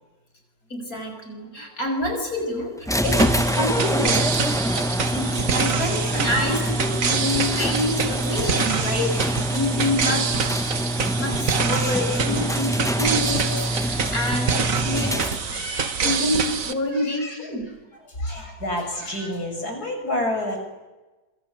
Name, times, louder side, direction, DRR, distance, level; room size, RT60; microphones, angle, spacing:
voice 1, 0.7-2.7 3.0-3.3 3.5-4.2 5.1-10.3 11.2-15.3 16.0-17.7, left 1 dB, 65° left, 4 dB, 6.6 m, -27 dB
sound 1, 2.9-15.6, equal, 5° left, 0.7 m, -25 dB
sound 2, 3.0-16.7, right 6 dB, 60° right, 1.8 m, -26 dB
voice 2, 3.5-5.2 5.6-6.6 7.2-7.9 11.6-13.1 15.0-16.0 16.9-17.7 18.0-20.6, left 1 dB, 90° left, 4 dB, 7.3 m, -33 dB
26.0 x 24.5 x 8.7 m, 1.1 s
omnidirectional pair, 1.6 m